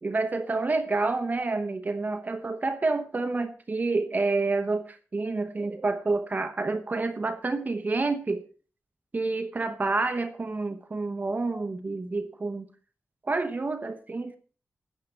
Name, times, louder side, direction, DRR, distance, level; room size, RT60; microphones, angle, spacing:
voice 1, 0.0-8.5 9.1-12.7 13.2-14.4, right 3 dB, 35° right, 1.0 m, -28 dB
14.0 x 9.4 x 4.4 m
wide cardioid pair, 155°, 5 cm